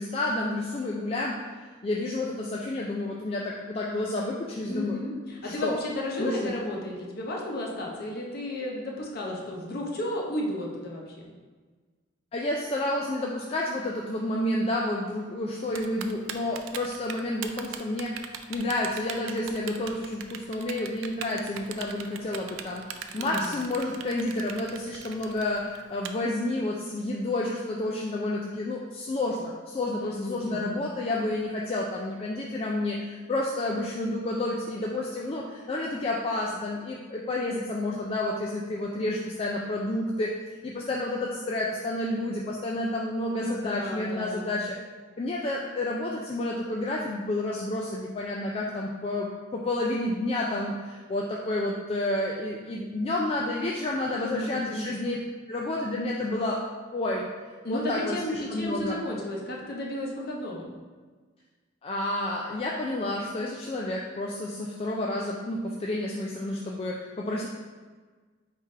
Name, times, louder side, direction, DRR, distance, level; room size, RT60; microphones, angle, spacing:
voice 1, 0.0-1.4 1.8-5.0 5.4-5.8 6.2-6.5 12.3-40.3 40.6-44.8 45.2-55.2 55.5-56.6 56.9-57.3 57.7-59.0 61.8-67.5, left 1 dB, 30° left, -3 dB, 0.3 m, -30 dB
voice 2, 4.6-11.3 23.1-23.6 30.0-30.7 43.3-44.5 54.2-54.9 57.6-60.7, left 1 dB, 50° left, -2 dB, 0.8 m, -33 dB
Typing, 15.7-26.1, right 9 dB, 75° right, 0.3 m, -39 dB
3.6 x 3.3 x 4.2 m, 1.4 s
head